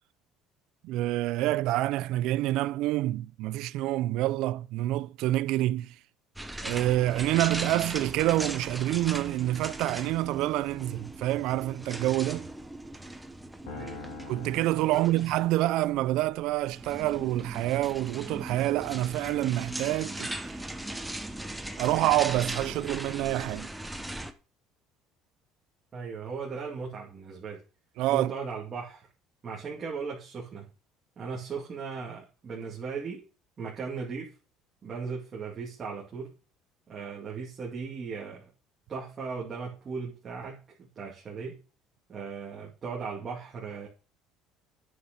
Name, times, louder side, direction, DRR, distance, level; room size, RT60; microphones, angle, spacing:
voice 1, 0.8-5.9 6.6-12.5 14.3-20.3 21.8-23.7 28.0-28.3, right 15 dB, 65° right, 0.4 m, -27 dB
sound 1, 6.4-24.3, right 1 dB, 5° right, 0.9 m, -39 dB
voice 2, 13.6-14.0 14.9-15.2 25.9-27.6 28.1-29.1 29.4-30.7 31.2-33.3 33.6-34.3 34.8-36.3 36.9-38.5 38.9-41.6 42.1-43.9, right 5 dB, 30° right, 2.5 m, -37 dB
sound 2, 13.7-16.1, left 4 dB, 80° left, 4.0 m, -45 dB
9.6 x 6.4 x 5.2 m
cardioid pair, 150°, 0 cm